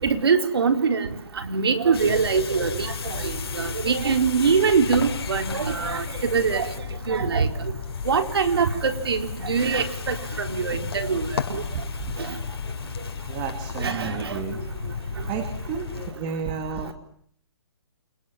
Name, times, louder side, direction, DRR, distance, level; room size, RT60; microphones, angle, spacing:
voice 1, 0.0-1.1 1.4-6.7 7.1-7.5 8.1-11.6 12.3-12.4 13.8-14.4, right 5 dB, 65° right, 8 dB, 4.2 m, -23 dB
sound 1, 1.9-16.1, left 6 dB, 60° left, 6.3 m, -33 dB
voice 2, 13.3-14.6 15.3-16.9, right 6 dB, 20° right, 8 dB, 2.4 m, -32 dB
29.0 x 26.5 x 7.5 m, 0.65 s
hypercardioid pair, 175°, 14 cm